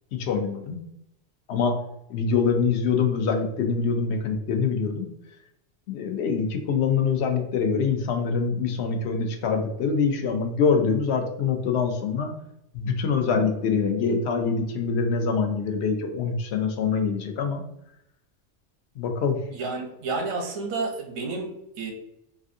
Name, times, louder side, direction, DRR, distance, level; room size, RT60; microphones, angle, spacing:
voice 1, 0.1-0.8 1.5-1.8 2.1-5.1 5.9-12.3 12.7-17.6 19.0-19.4, left 5 dB, 65° left, 4 dB, 0.8 m, -24 dB
voice 2, 19.5-21.9, right 3 dB, 85° right, 3 dB, 1.0 m, -30 dB
3.3 x 2.5 x 2.6 m, 0.80 s
omnidirectional pair, 1.3 m